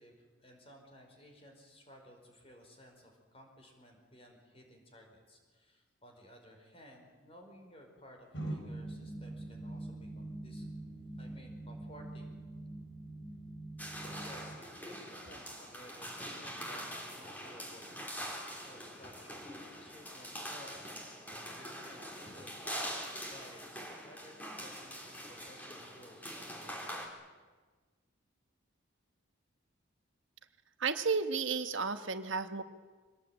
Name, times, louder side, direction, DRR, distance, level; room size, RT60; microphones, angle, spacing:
voice 1, 0.0-10.6 11.2-12.4 14.0-19.5 19.8-20.8 21.6-27.1, equal, 30° left, 2 dB, 4.9 m, -56 dB
sound 1, 8.3-14.6, right 2 dB, 60° left, 4.9 m, -44 dB
sound 2, 13.8-27.1, equal, 10° left, 3.3 m, -44 dB
voice 2, 30.8-32.6, right 5 dB, 70° right, 8 dB, 1.3 m, -32 dB
24.0 x 19.0 x 9.0 m, 1.4 s
head